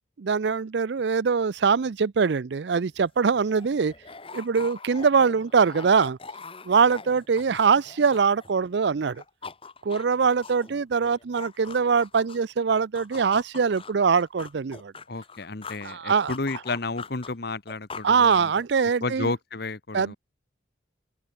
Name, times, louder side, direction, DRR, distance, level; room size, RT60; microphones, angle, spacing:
voice 1, 0.2-3.9 4.3-6.2 6.7-9.2 9.8-14.9 15.8-16.3 18.0-19.3 19.9-20.2, right 5 dB, 60° right, 0.5 m, -23 dB
sound 1, 2.9-3.0 3.2-8.7 9.0-12.5 13.0-16.0 16.3-19.0, left 4 dB, 30° left, 1.7 m, -43 dB
voice 2, 15.1-18.5 19.0-20.2, left 3 dB, 55° left, 1.2 m, -32 dB
open air
head